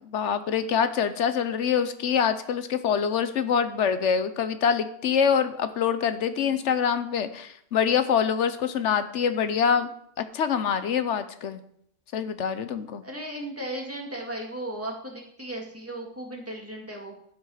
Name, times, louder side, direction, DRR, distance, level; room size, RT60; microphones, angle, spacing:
voice 1, 0.1-11.6 12.1-13.0, left 7 dB, 65° left, 11 dB, 1.0 m, -25 dB
voice 2, 13.0-17.2, right 1 dB, 10° right, 0 dB, 1.9 m, -36 dB
12.0 x 6.2 x 4.9 m, 0.70 s
omnidirectional pair, 1.4 m